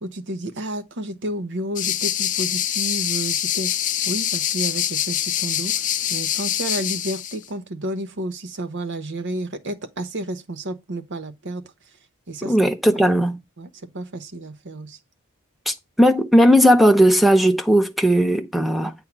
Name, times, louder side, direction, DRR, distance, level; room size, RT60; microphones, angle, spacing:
voice 1, 0.0-3.7 4.1-5.7 6.1-11.6 12.3-12.5 12.9-13.0 13.6-13.7 13.9-15.0, right 1 dB, 55° right, 1.0 m, -31 dB
sound 1, 1.8-7.4, left 10 dB, 35° left, 0.4 m, -24 dB
voice 2, 12.4-13.4 15.7-18.9, equal, ahead, 0.7 m, -17 dB
8.5 x 3.7 x 5.9 m
head